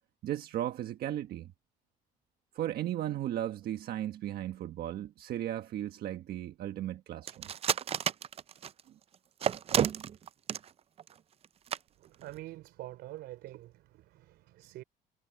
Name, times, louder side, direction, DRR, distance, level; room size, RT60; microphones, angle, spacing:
voice 1, 0.2-1.5 2.5-7.5 8.9-9.0, right 12 dB, 65° right, 1.4 m, -36 dB
sound 1, 7.3-8.8 9.4-10.7 11.0-11.1 11.4-11.5 11.7-11.8 12.2-12.4, right 9 dB, 35° right, 0.4 m, -30 dB
voice 2, 12.0-14.8, right 16 dB, 80° right, 3.6 m, -46 dB
cardioid pair, 110°, 17 cm